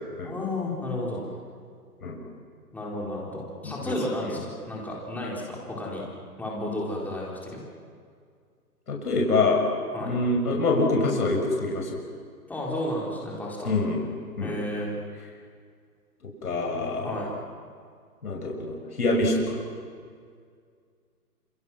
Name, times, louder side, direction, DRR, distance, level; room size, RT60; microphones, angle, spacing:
voice 1, 0.2-1.3 2.7-4.4 4.7-6.0 6.4-7.6 9.9-10.1 12.5-13.8 14.4-14.9 17.0-17.3, left 1 dB, 5° left, -4 dB, 4.2 m, -32 dB
voice 2, 8.9-9.6 10.0-12.0 13.6-14.1 14.4-14.6 16.4-17.1 18.2-19.6, left 2 dB, 70° left, 0 dB, 6.6 m, -25 dB
29.0 x 27.5 x 6.3 m, 2.1 s
hypercardioid pair, 145°, 47 cm